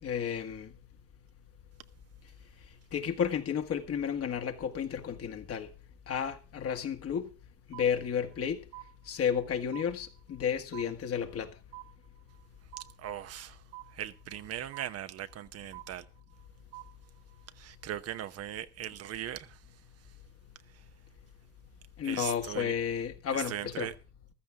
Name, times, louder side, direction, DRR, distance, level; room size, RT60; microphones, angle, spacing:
voice 1, 0.0-0.7 2.9-5.7 6.1-7.3 7.7-8.6 9.1-11.5 22.0-23.9, left 8 dB, 50° left, 1.8 m, -32 dB
sound 1, 7.7-8.4 8.7-9.5 9.7-10.5 10.7-11.5 11.7-12.5 12.7-13.5 13.7-14.5 14.7-15.5 15.7-16.5 16.7-17.5, right 20 dB, 85° right, 1.0 m, -49 dB
voice 2, 13.0-13.6 13.9-16.0 17.6-19.6 22.0-22.7 23.3-23.9, right 11 dB, 50° right, 0.9 m, -39 dB
14.5 x 13.0 x 3.6 m
supercardioid pair, 80°, 31 cm